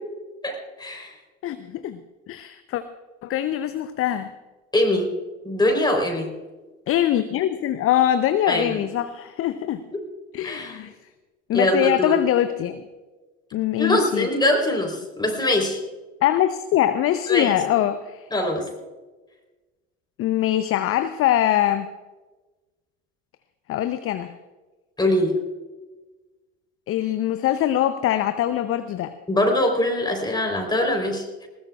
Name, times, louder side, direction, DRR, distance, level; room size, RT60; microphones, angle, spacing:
voice 1, 0.4-1.2 4.7-5.1 5.4-6.3 8.5-8.8 9.9-10.0 10.4-10.8 11.5-12.1 13.8-15.8 17.3-17.6 18.3-18.7 25.0-25.3 29.3-31.5, left 1 dB, 10° left, 2 dB, 3.8 m, -23 dB
voice 2, 1.4-2.0 2.3-2.8 3.2-4.3 6.9-9.8 10.3-10.9 11.5-12.8 13.5-14.3 16.2-18.2 20.2-21.9 23.7-24.4 26.9-29.1, left 11 dB, 35° left, 12 dB, 0.7 m, -23 dB
20.0 x 19.0 x 2.4 m, 1.2 s
figure-of-eight pair, 60°, 39 cm